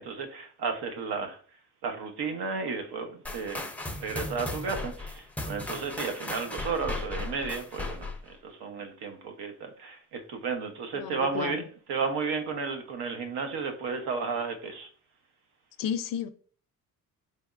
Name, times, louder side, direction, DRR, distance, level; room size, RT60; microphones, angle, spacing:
voice 1, 0.0-1.4 1.8-3.7 4.0-11.6 11.9-14.9, right 5 dB, 75° right, 0.9 m, -33 dB
sound 1, 3.2-8.3, left 2 dB, 5° left, 0.5 m, -36 dB
voice 2, 10.9-11.6 15.8-16.3, left 8 dB, 60° left, 0.5 m, -32 dB
4.2 x 3.3 x 2.4 m
cardioid pair, 105°, 39 cm